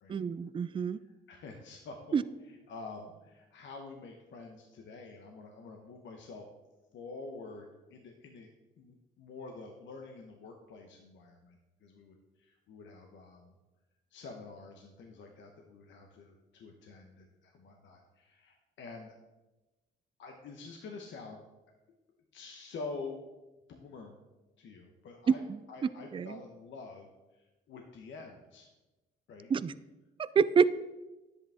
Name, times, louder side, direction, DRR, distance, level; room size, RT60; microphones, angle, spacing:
voice 1, 0.1-1.0 2.1-2.2 25.3-25.6 26.1-26.4 29.5-29.7 30.2-30.7, right 6 dB, 25° right, 15 dB, 0.4 m, -27 dB
voice 2, 1.0-2.0 2.5-6.4 6.9-8.5 8.8-13.6 14.1-19.2 20.2-21.4 22.3-23.2 23.7-24.2 24.6-25.4 25.7-28.7 29.3-29.5, left 3 dB, 70° left, 2 dB, 1.0 m, -47 dB
10.5 x 8.2 x 3.5 m, 1.1 s
cardioid pair, 90°, 20 cm